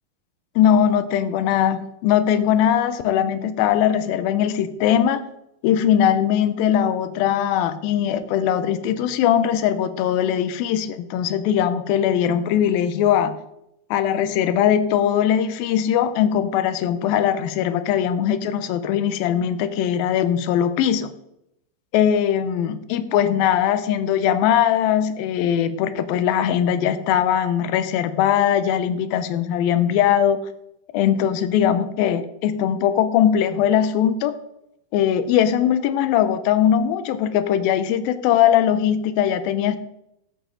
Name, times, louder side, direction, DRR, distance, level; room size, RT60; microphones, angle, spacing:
voice 1, 0.6-5.2 5.6-13.4 13.9-21.1 21.9-30.4 30.9-34.4 34.9-39.8, left 9 dB, 80° left, 12 dB, 2.4 m, -20 dB
13.5 x 7.1 x 3.8 m, 0.82 s
omnidirectional pair, 4.3 m